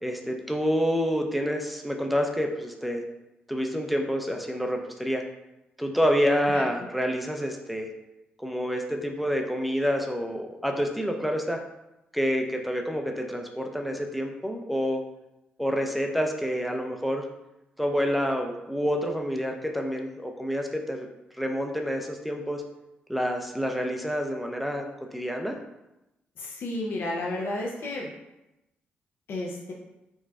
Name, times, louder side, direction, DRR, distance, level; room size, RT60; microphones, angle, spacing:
voice 1, 0.0-3.0 3.5-5.2 5.8-7.9 8.4-11.6 12.1-15.0 15.6-17.3 17.8-21.1 21.4-22.6 23.1-24.9 25.1-25.6, equal, ahead, 3 dB, 0.5 m, -28 dB
voice 2, 26.4-28.1 29.3-29.7, left 2 dB, 65° left, -2 dB, 0.5 m, -32 dB
4.1 x 2.2 x 2.3 m, 0.93 s
supercardioid pair, 55°, 4 cm